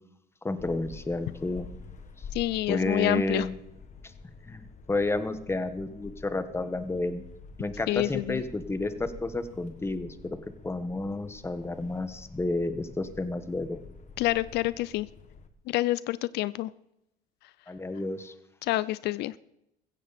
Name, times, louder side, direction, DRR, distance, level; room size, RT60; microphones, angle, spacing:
voice 1, 0.4-1.7 2.7-3.6 4.4-4.6 4.9-7.2 7.6-10.4 10.6-13.8 17.7-18.3, left 2 dB, 15° left, 10 dB, 1.4 m, -31 dB
sound 1, 0.6-15.5, left 4 dB, 45° left, 1.5 m, -48 dB
voice 2, 2.3-3.5 7.9-8.4 14.2-15.1 15.7-16.7 18.6-19.3, left 17 dB, 80° left, 18 dB, 0.4 m, -28 dB
16.0 x 15.0 x 4.2 m, 0.85 s
cardioid pair, 110°, 17 cm